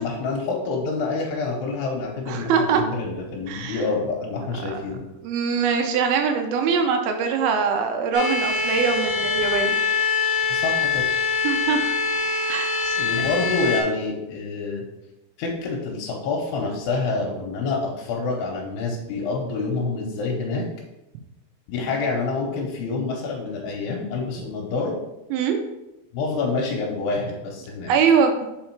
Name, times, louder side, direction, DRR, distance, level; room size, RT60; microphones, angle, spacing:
voice 1, 0.0-5.0 10.5-11.0 13.0-14.8 15.4-20.6 21.7-24.9 26.1-27.9, left 3 dB, 80° left, -1 dB, 2.9 m, -27 dB
voice 2, 2.3-2.8 3.5-3.8 4.6-4.8 5.2-9.8 11.4-11.8 12.5-13.0 25.3-25.6 27.9-28.3, right 6 dB, 80° right, 5 dB, 2.4 m, -22 dB
sound 1, 8.1-13.8, left 4 dB, 40° left, 1.3 m, -24 dB
5.6 x 4.7 x 4.5 m, 0.94 s
omnidirectional pair, 4.7 m